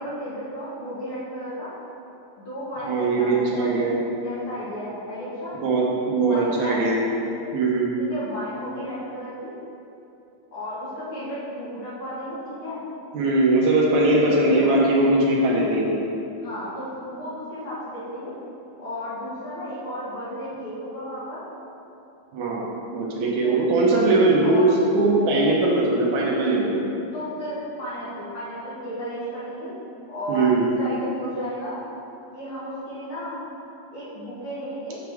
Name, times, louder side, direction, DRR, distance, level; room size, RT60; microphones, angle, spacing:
voice 1, 0.0-1.7 2.4-3.9 4.2-5.6 6.2-6.8 8.0-9.5 10.5-12.8 14.1-14.7 16.4-18.3 18.8-21.4 23.3-23.6 24.4-24.8 27.1-29.8 30.1-31.8 32.3-33.3 33.9-35.0, equal, 50° left, -10 dB, 2.1 m, -33 dB
voice 2, 2.8-4.0 5.6-7.0 7.5-7.9 13.1-15.9 22.3-22.6 22.9-24.7 24.9-26.8 30.3-30.7, right 2 dB, 75° right, -3 dB, 2.2 m, -20 dB
7.1 x 6.2 x 3.5 m, 2.8 s
omnidirectional pair, 3.6 m